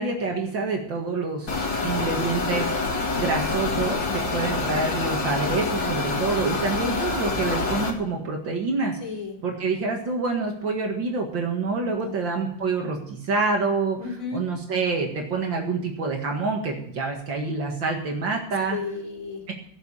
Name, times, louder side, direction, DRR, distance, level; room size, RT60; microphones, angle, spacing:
voice 1, 0.0-9.0 9.4-14.0 14.3-18.8 19.5-19.6, right 4 dB, 70° right, 1 dB, 2.7 m, -27 dB
sound 1, 1.5-7.9, left 3 dB, 65° left, 2.8 m, -26 dB
voice 2, 9.0-9.4 11.8-12.6 14.0-14.4 18.7-19.4, left 4 dB, 45° left, 1 dB, 3.4 m, -34 dB
16.5 x 7.2 x 8.6 m, 0.66 s
omnidirectional pair, 2.1 m